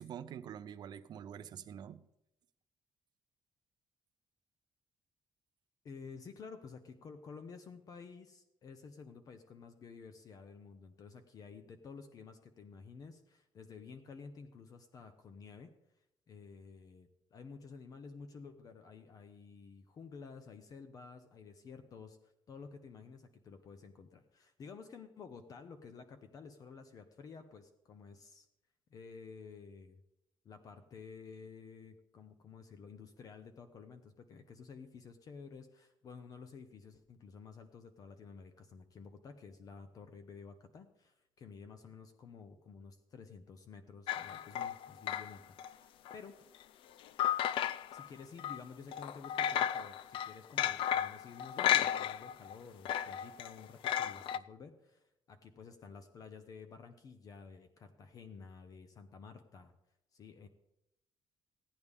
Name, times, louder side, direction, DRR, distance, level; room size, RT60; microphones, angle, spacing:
voice 1, 0.0-2.0, right 9 dB, 50° right, 11 dB, 0.6 m, -46 dB
voice 2, 5.8-15.7 16.3-28.5 28.9-30.0 30.4-46.4 47.9-59.7 60.1-60.5, left 5 dB, 40° left, 8 dB, 0.7 m, -52 dB
sound 1, 44.1-45.7 46.1-46.2 47.2-48.1 48.4-48.6 48.9-52.5 52.9-54.4, left 10 dB, 70° left, 0.4 m, -33 dB
16.0 x 9.7 x 3.5 m, 0.84 s
cardioid pair, 170°, 9 cm